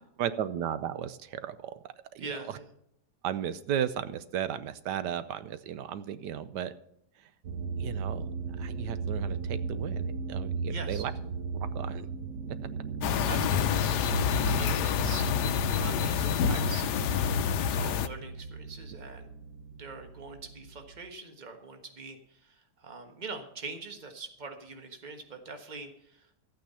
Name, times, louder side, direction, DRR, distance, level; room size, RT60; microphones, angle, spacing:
voice 1, 0.2-2.6 3.2-6.7 7.8-8.3 8.6-11.1 11.5-12.1, right 9 dB, 80° right, 13 dB, 1.3 m, -35 dB
voice 2, 2.2-2.7 10.7-11.0 13.1-19.3 19.8-26.3, right 3 dB, 30° right, 5 dB, 1.4 m, -43 dB
sound 1, 7.4-21.1, right 4 dB, 55° right, 1.1 m, -36 dB
sound 2, 13.0-18.1, left 7 dB, 75° left, 1.2 m, -27 dB
13.0 x 8.9 x 5.6 m, 0.73 s
omnidirectional pair, 1.8 m